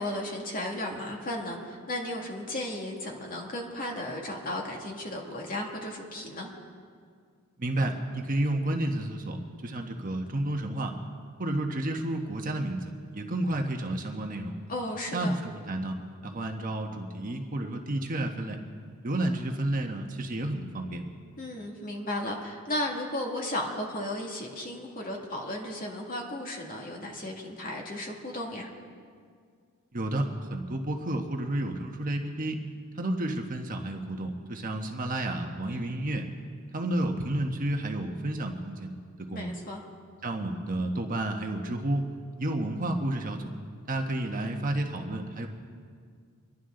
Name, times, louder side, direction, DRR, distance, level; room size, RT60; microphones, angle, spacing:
voice 1, 0.0-6.5 14.7-15.3 21.4-28.7 35.7-35.9 39.3-39.8, left 1 dB, 40° left, 0 dB, 2.2 m, -35 dB
voice 2, 7.6-10.9 11.4-14.6 15.1-16.0 16.2-18.6 19.0-21.0 29.9-32.6 33.0-36.3 36.7-38.9 39.3-39.5 40.2-42.0 42.4-43.5 43.9-45.5, right 1 dB, 35° right, 3 dB, 1.2 m, -31 dB
26.5 x 11.0 x 3.8 m, 2.1 s
head